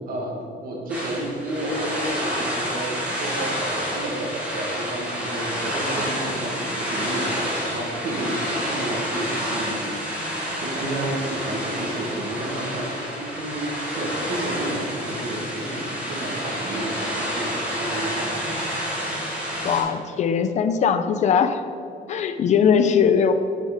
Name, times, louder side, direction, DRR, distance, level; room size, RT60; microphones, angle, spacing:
voice 1, 0.1-13.7 13.9-18.6, right 1 dB, 60° right, -1 dB, 1.5 m, -31 dB
sound 1, 0.9-19.8, equal, 5° right, 1.7 m, -29 dB
voice 2, 19.6-21.6 22.1-23.3, left 7 dB, 45° left, 10 dB, 0.4 m, -20 dB
6.1 x 5.4 x 5.0 m, 2.7 s
cardioid pair, 175°, 17 cm